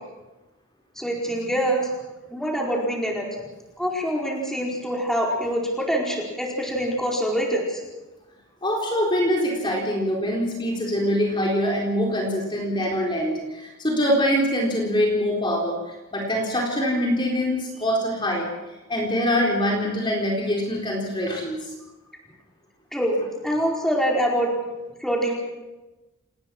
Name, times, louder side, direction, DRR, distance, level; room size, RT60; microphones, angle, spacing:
voice 1, 1.0-1.9 2.3-3.3 3.8-7.8 22.9-23.2 23.4-24.5 25.0-25.3, equal, ahead, -2 dB, 4.7 m, -25 dB
voice 2, 8.6-15.8 16.1-18.5 18.9-21.6, equal, 20° left, -1 dB, 4.1 m, -24 dB
28.5 x 20.0 x 6.2 m, 1.1 s
head